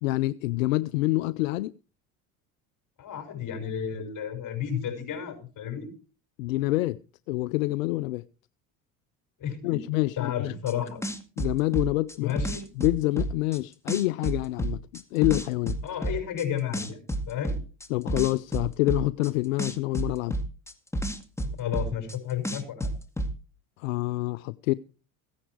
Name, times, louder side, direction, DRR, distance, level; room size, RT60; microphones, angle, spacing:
voice 1, 0.0-1.7 6.4-7.0 7.3-8.2 9.6-10.5 11.4-12.3 12.8-15.8 17.9-20.4 23.8-24.7, left 19 dB, 85° left, 0.6 m, -27 dB
voice 2, 3.0-5.9 9.4-9.8 10.2-11.1 12.2-12.7 15.8-17.0 17.3-17.6 21.6-22.9, left 9 dB, 50° left, 6.2 m, -32 dB
sound 1, 10.7-10.8 11.0-13.6 13.9-16.4 16.7-19.3 19.6-22.2 22.4-23.3, right 1 dB, 5° left, 2.2 m, -30 dB
16.5 x 10.0 x 4.8 m
hypercardioid pair, 75°, 39 cm